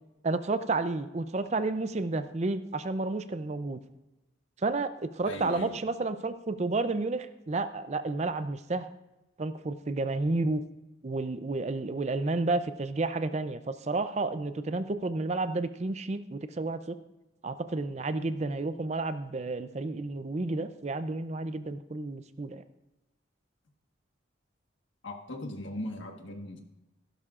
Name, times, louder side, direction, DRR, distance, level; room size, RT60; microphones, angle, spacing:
voice 1, 0.2-3.8 4.6-8.9 9.4-10.6 11.0-17.0 17.4-22.6, right 3 dB, 35° right, 12 dB, 0.5 m, -31 dB
voice 2, 5.2-5.7 25.0-26.6, left 1 dB, 80° left, 3 dB, 1.5 m, -38 dB
15.5 x 12.0 x 2.5 m, 0.98 s
head